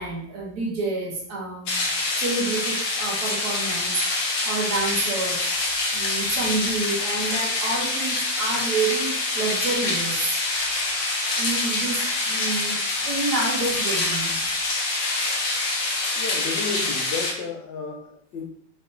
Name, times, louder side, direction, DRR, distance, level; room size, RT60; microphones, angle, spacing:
voice 1, 0.0-1.9 2.2-3.9 4.4-5.5 5.9-10.2 11.4-14.4, right 3 dB, 65° right, -1 dB, 1.3 m, -29 dB
sound 1, 1.7-17.3, left 2 dB, 60° left, 1.1 m, -26 dB
voice 2, 16.1-18.4, left 5 dB, 80° left, 2 dB, 1.4 m, -32 dB
4.8 x 3.2 x 2.6 m, 0.68 s
omnidirectional pair, 2.0 m